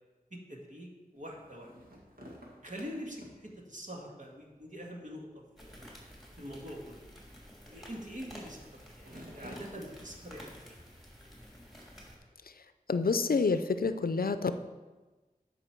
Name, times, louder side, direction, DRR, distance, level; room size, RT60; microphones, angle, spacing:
voice 1, 0.3-1.7 2.6-5.3 5.6-5.8 6.3-7.1 7.7-10.8, equal, 55° right, -1 dB, 1.9 m, -44 dB
sound 1, 1.2-12.3, equal, 80° right, 1.9 m, -55 dB
sound 2, 5.6-12.2, equal, ahead, 2.9 m, -52 dB
voice 2, 12.9-14.5, left 4 dB, 80° left, 11 dB, 0.5 m, -28 dB
12.0 x 5.3 x 4.5 m, 1.2 s
wide cardioid pair, 40°, 15 cm